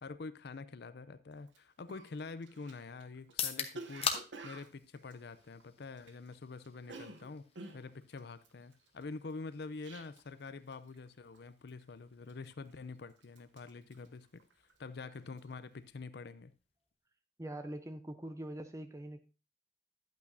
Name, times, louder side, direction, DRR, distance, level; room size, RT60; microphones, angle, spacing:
voice 1, 0.0-7.5 7.7-14.4 14.8-16.5, left 4 dB, 60° left, 0.5 m, -46 dB
Cough, 1.5-1.6 1.9-6.3 6.6-10.4 10.7-11.1 11.3-11.8 12.3-12.9 13.2-14.9 15.2-15.5, right 2 dB, 75° right, 0.9 m, -51 dB
sound 1, 3.2-17.1, left 7 dB, 30° left, 0.8 m, -46 dB
voice 2, 17.4-19.2, right 1 dB, 15° right, 0.6 m, -43 dB
10.5 x 8.4 x 2.7 m
head